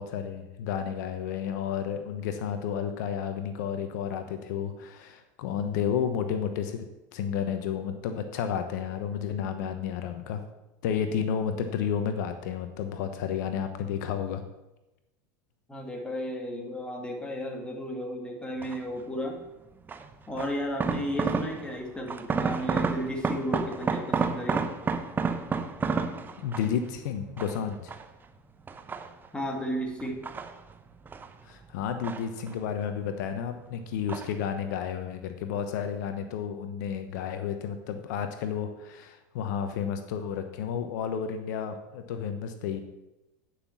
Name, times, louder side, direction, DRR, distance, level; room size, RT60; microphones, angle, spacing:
voice 1, 0.0-6.9 7.1-10.4 10.8-14.4 26.4-27.9 31.4-42.8, left 8 dB, 70° left, 8 dB, 0.9 m, -31 dB
voice 2, 15.7-19.4 20.3-24.7 29.3-30.2, equal, 10° left, 1 dB, 2.3 m, -33 dB
sound 1, 18.6-19.0 19.9-21.8 22.1-26.9 27.4-28.2 28.7-29.5 30.0-31.3 31.6-32.8 33.1-33.7 34.1-34.5 34.7-34.8, right 5 dB, 20° right, 0.8 m, -31 dB
9.7 x 5.9 x 7.3 m, 0.98 s
supercardioid pair, 110°, 10 cm